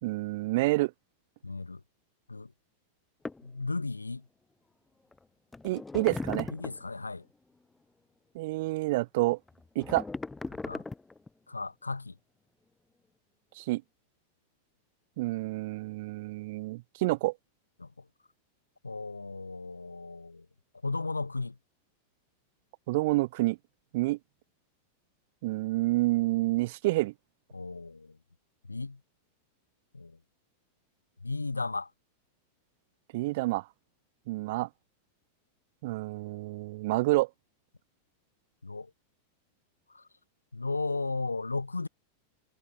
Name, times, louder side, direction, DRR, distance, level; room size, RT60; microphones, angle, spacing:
voice 1, 0.0-0.9 5.6-6.5 8.3-9.4 9.8-10.0 13.6-13.8 15.2-17.3 22.9-23.6 23.9-24.2 25.4-27.1 33.1-33.7 34.3-34.7 35.8-37.3, right 20 dB, 50° right, 1.9 m, -28 dB
voice 2, 1.4-1.8 2.3-2.5 3.4-4.2 6.5-7.2 10.6-10.8 11.5-12.2 17.8-18.0 18.8-20.5 20.8-21.5 27.5-28.2 28.7-29.0 29.9-30.2 31.2-31.9 38.6-38.9 39.9-40.0 40.5-41.9, left 3 dB, 80° left, 3.1 m, -35 dB
sound 1, 3.3-3.5 5.1-5.2 5.5-6.9 9.5-11.3, left 3 dB, 10° left, 3.3 m, -38 dB
figure-of-eight pair, 90°, 0 cm